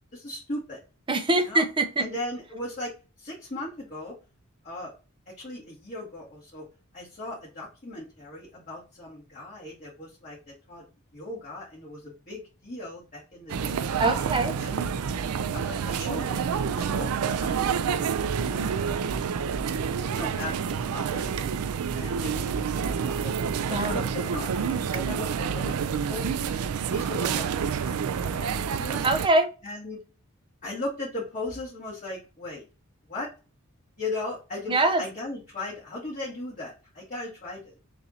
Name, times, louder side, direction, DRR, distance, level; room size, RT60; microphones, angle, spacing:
voice 1, 0.1-0.8 1.4-1.6 2.0-4.2 4.6-4.9 5.3-6.7 6.9-10.8 11.1-14.0 14.6-14.9 15.5-17.6 18.0-19.0 20.0-21.3 21.9-23.4 23.7-26.6 26.9-29.0 29.6-30.0 30.6-32.6 33.1-33.3 34.0-37.8, left 2 dB, 40° left, -8 dB, 1.9 m, -38 dB
voice 2, 1.1-2.1 14.0-14.5 23.7-24.0 29.0-29.5 34.7-35.0, right 2 dB, 25° right, 6 dB, 0.6 m, -23 dB
sound 1, 13.5-29.3, right 6 dB, 85° right, 0.4 m, -28 dB
6.9 x 2.5 x 2.7 m, 0.33 s
head